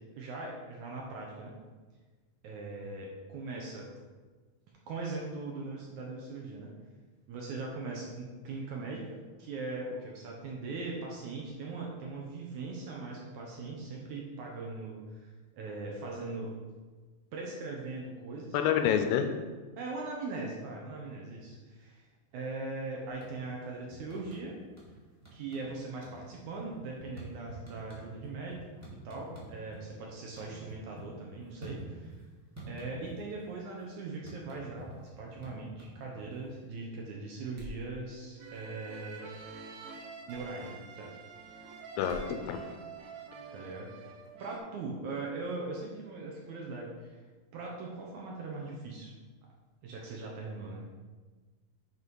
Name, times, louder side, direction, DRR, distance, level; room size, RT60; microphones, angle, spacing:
voice 1, 0.2-1.5 2.4-3.9 4.9-6.7 7.3-15.3 15.6-16.5 17.3-18.6 19.8-22.1 22.3-24.6 25.3-32.2 32.7-39.3 40.3-41.2 43.5-47.2 47.5-49.1 49.8-50.9, right 3 dB, 70° right, -2 dB, 1.9 m, -40 dB
voice 2, 18.5-19.3 42.0-42.6, left 9 dB, 80° left, 7 dB, 2.3 m, -27 dB
sound 1, 23.1-23.6 23.9-24.9 25.2-25.7 26.0-29.8 30.1-32.2 32.6-33.4 33.7-36.6, right 2 dB, 10° right, 0.7 m, -48 dB
sound 2, 37.5-37.9 40.3-40.5 42.1-42.3, left 1 dB, 45° right, 1.6 m, -45 dB
sound 3, 38.4-44.6, right 5 dB, 85° right, 1.5 m, -47 dB
8.1 x 4.1 x 5.4 m, 1.4 s
omnidirectional pair, 4.2 m